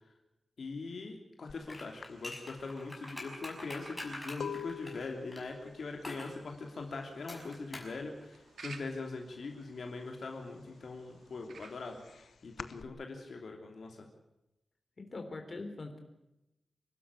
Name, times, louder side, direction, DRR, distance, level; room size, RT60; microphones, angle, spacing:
voice 1, 0.6-12.0 12.4-14.1, left 3 dB, 60° left, 2 dB, 3.0 m, -42 dB
sound 1, 1.5-1.7 2.0-7.7 7.9-8.5 8.7-9.9 10.3-12.8, left 7 dB, 80° left, 1.0 m, -46 dB
sound 2, 1.7-5.5 6.0-6.3 7.3-8.2, left 1 dB, 15° left, 5.9 m, -44 dB
sound 3, 5.7-12.4, right 5 dB, 80° right, 2.3 m, -56 dB
voice 2, 15.0-16.0, left 3 dB, 35° left, 5 dB, 3.6 m, -42 dB
26.5 x 12.5 x 8.3 m, 0.91 s
wide cardioid pair, 165°, 0 cm